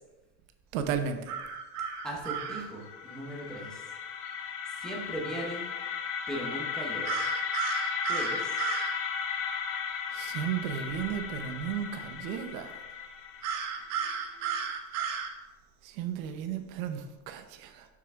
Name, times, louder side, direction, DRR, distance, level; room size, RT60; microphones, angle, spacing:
voice 1, 0.7-1.3 10.1-12.7 15.8-17.9, right 8 dB, 70° right, 7 dB, 0.9 m, -34 dB
sound 1, 1.3-2.6 7.0-8.9 13.4-15.3, right 7 dB, 40° right, 0.8 m, -33 dB
voice 2, 2.0-3.8 4.8-5.7 6.3-7.2 8.1-8.6, right 1 dB, ahead, -3 dB, 0.8 m, -38 dB
sound 2, 2.5-14.5, left 7 dB, 30° left, 0.5 m, -36 dB
7.7 x 5.9 x 3.5 m, 1.1 s
cardioid pair, 170°, 44 cm